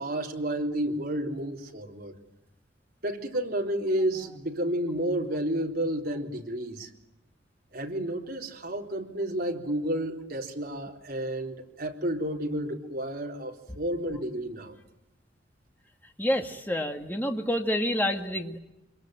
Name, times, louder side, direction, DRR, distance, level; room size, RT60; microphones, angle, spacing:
voice 1, 0.0-2.1 3.0-6.9 7.7-14.8, right 1 dB, 55° right, 1 dB, 3.8 m, -31 dB
voice 2, 16.2-18.6, equal, 10° left, 4 dB, 1.9 m, -28 dB
26.0 x 22.5 x 9.2 m, 0.90 s
head